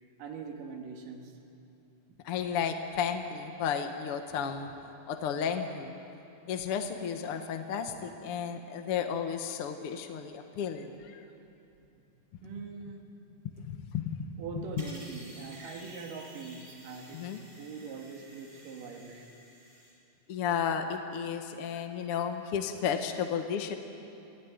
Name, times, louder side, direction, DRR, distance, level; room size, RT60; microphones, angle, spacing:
voice 1, 0.2-1.4 12.4-13.2 14.4-19.3, right 5 dB, 85° right, 3.4 m, -42 dB
voice 2, 2.2-4.7 5.1-5.9 6.5-11.2 13.6-14.2 14.8-14.9 17.1-17.4 20.3-23.8, left 7 dB, 60° left, 1.6 m, -33 dB
sound 1, 14.8-19.9, right 1 dB, 40° right, 6.5 m, -52 dB
25.5 x 17.0 x 9.4 m
omnidirectional pair, 3.7 m